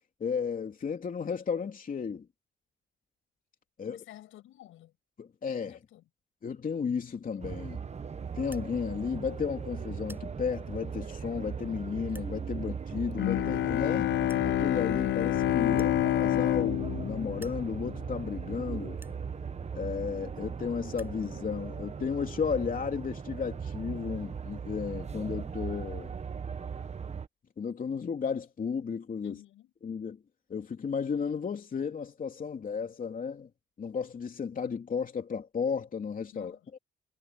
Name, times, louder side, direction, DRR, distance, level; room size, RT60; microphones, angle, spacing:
voice 1, 0.2-2.3 3.8-4.0 5.2-5.8 6.4-7.8 8.3-14.1 14.4-19.0 19.7-26.1 27.6-29.3 29.8-30.2 30.5-33.5 33.8-36.8, left 6 dB, 45° left, 3.1 m, -34 dB
voice 2, 3.8-4.9 5.7-6.1 29.2-29.7 36.3-36.8, left 13 dB, 85° left, 6.6 m, -52 dB
sound 1, 7.4-27.3, right 6 dB, 35° right, 1.0 m, -38 dB
sound 2, 8.4-8.7 9.4-9.6 9.9-10.3 11.0-11.1 12.0-12.3 13.4-13.5 13.7-13.8 14.3-14.5 15.7-17.0 17.3-17.6 18.3-18.4 18.9-19.2 20.1-20.2 20.4-20.5 20.8-21.2, right 1 dB, 10° right, 7.7 m, -54 dB
Bowed string instrument, 13.2-18.4, left 14 dB, 65° left, 0.5 m, -28 dB
cardioid pair, 90°, 20 cm